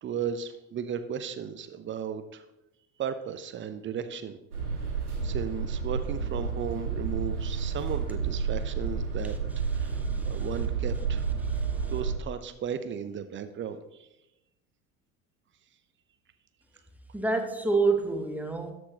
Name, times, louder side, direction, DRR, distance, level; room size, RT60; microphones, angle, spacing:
voice 1, 0.0-2.4 3.0-4.4 5.2-9.3 9.7-11.2 11.9-14.1, right 8 dB, 25° right, 11 dB, 0.8 m, -35 dB
sound 1, 4.5-12.1, right 5 dB, 85° right, 1.8 m, -30 dB
voice 2, 9.8-10.4 11.5-11.6 17.1-18.7, right 3 dB, 5° right, 4 dB, 1.1 m, -28 dB
13.0 x 6.2 x 2.9 m, 0.91 s
figure-of-eight pair, 65°, 43 cm